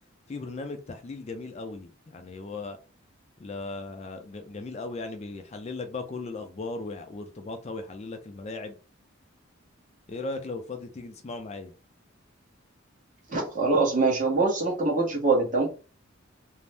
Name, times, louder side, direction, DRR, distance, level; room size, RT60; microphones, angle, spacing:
voice 1, 0.3-2.8 3.4-8.7 10.1-11.7, left 3 dB, 35° left, 0.4 m, -37 dB
voice 2, 13.3-15.7, right 3 dB, 40° right, 0.9 m, -24 dB
2.6 x 2.0 x 3.3 m
head